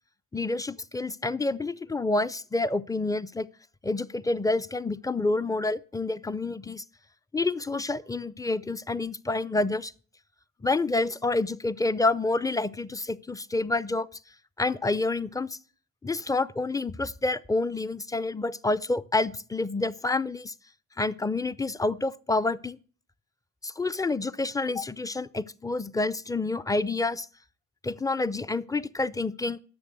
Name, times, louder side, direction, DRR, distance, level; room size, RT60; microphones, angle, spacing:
voice 1, 0.3-3.5 3.8-6.8 7.3-9.9 10.6-14.1 14.6-15.6 16.0-20.5 21.0-22.8 23.6-27.3 27.8-29.6, left 2 dB, 10° left, 0.5 m, -28 dB
10.5 x 7.0 x 7.7 m
cardioid pair, 90°, 30 cm